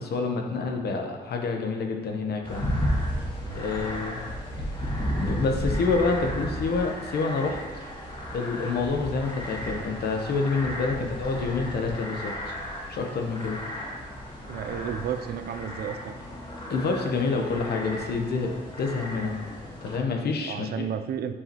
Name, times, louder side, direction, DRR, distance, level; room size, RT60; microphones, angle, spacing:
voice 1, 0.0-2.7 3.5-4.2 5.2-7.6 8.3-12.6 12.9-13.6 16.7-19.4 19.8-20.9, left 4 dB, 70° left, 3 dB, 0.9 m, -28 dB
sound 1, 2.4-20.0, equal, 30° left, 2.1 m, -34 dB
voice 2, 3.4-4.0 10.9-11.1 14.5-16.1 20.5-21.4, right 8 dB, 65° right, 10 dB, 0.4 m, -33 dB
8.4 x 4.8 x 3.0 m, 1.3 s
cardioid pair, 90°, 17 cm